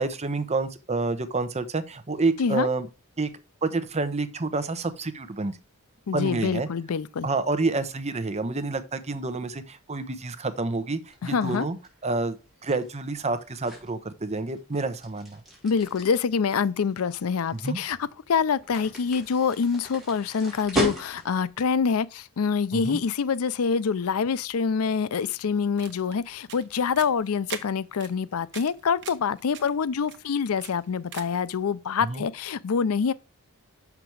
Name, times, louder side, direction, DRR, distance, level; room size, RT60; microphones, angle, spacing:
voice 1, 0.0-2.9 3.2-3.3 3.6-5.6 6.1-6.7 7.2-11.8 12.0-12.4 12.6-15.4 17.6-17.8 22.7-23.0 32.0-32.2, right 3 dB, 30° right, 0.8 m, -28 dB
voice 2, 6.1-7.3 11.2-11.7 15.6-33.1, left 6 dB, 80° left, 0.5 m, -26 dB
sound 1, 11.1-21.5, right 1 dB, ahead, 3.9 m, -37 dB
sound 2, 25.6-31.5, right 9 dB, 55° right, 1.1 m, -44 dB
6.8 x 6.0 x 4.7 m
head